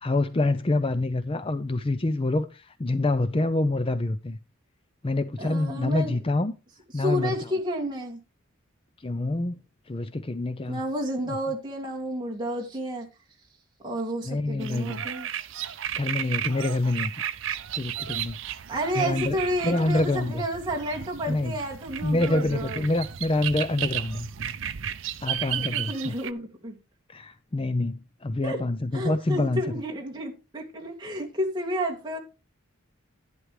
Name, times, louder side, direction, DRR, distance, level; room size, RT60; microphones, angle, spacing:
voice 1, 0.0-4.4 5.0-6.5 6.9-7.4 9.0-10.8 14.3-15.0 15.9-17.1 17.7-18.4 19.0-19.4 19.6-20.4 21.3-21.6 22.0-24.3 25.2-26.1 27.1-29.6, left 2 dB, 25° left, 0.5 m, -26 dB
voice 2, 5.4-6.2 6.9-8.2 10.7-13.1 13.8-15.3 18.7-22.8 25.5-26.8 28.4-28.6 28.9-32.2, equal, 20° right, 2.4 m, -31 dB
sound 1, 14.6-26.3, right 10 dB, 65° right, 0.6 m, -34 dB
11.0 x 10.5 x 3.3 m
head